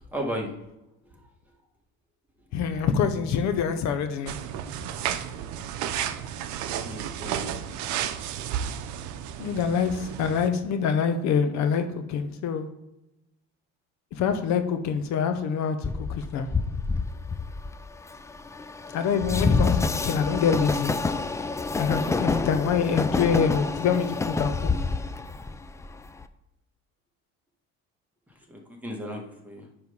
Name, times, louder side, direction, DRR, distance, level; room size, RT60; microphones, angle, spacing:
voice 1, 0.1-0.5 5.8-5.9 6.6-7.5 28.5-29.6, equal, 5° right, 0 dB, 1.6 m, -35 dB
voice 2, 2.5-4.4 9.4-12.7 14.1-16.5 18.9-20.9 21.8-24.7, left 6 dB, 70° left, 8 dB, 0.8 m, -25 dB
sound 1, 4.3-10.5, right 10 dB, 75° right, 0.7 m, -32 dB
Train, 15.8-26.2, left 3 dB, 10° left, 0.3 m, -28 dB
9.3 x 3.4 x 5.5 m, 0.92 s
cardioid pair, 130°, 29 cm